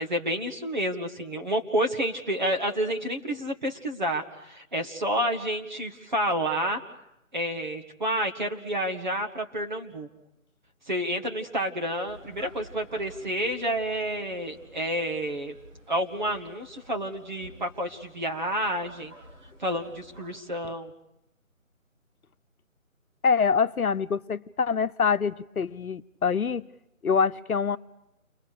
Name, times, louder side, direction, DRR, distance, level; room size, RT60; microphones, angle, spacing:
voice 1, 0.0-6.8 7.3-10.1 10.9-15.5 15.9-19.1 19.6-20.9, equal, 35° right, 4 dB, 1.7 m, -29 dB
sound 1, 12.1-20.4, equal, 65° right, 4.7 m, -51 dB
voice 2, 23.2-26.6 27.0-27.8, left 6 dB, 90° left, 11 dB, 1.0 m, -25 dB
29.5 x 23.5 x 6.7 m, 0.86 s
figure-of-eight pair, 175°, 42 cm